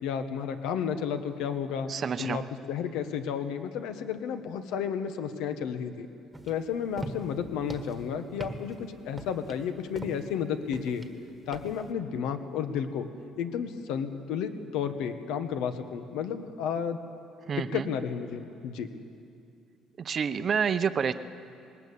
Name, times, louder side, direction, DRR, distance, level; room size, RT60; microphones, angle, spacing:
voice 1, 0.0-1.9 2.2-6.1 6.5-11.1 11.5-13.0 13.4-17.0 17.7-18.9, left 7 dB, 85° left, 8 dB, 1.4 m, -32 dB
voice 2, 1.9-2.4 17.5-17.8 20.0-21.1, right 7 dB, 35° right, 11 dB, 0.7 m, -28 dB
sound 1, 6.3-11.9, right 2 dB, 10° right, 1.4 m, -42 dB
20.5 x 19.5 x 8.5 m, 2.6 s
cardioid pair, 145°, 0 cm